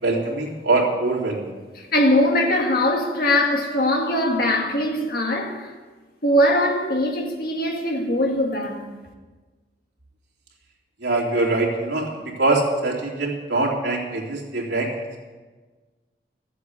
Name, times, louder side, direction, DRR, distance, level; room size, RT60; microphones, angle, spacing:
voice 1, 0.0-1.5 11.0-14.9, right 2 dB, 90° right, 3.3 m, -23 dB
voice 2, 1.8-5.7 6.2-8.8, left 1 dB, 55° left, 2.1 m, -21 dB
15.0 x 8.3 x 8.3 m
head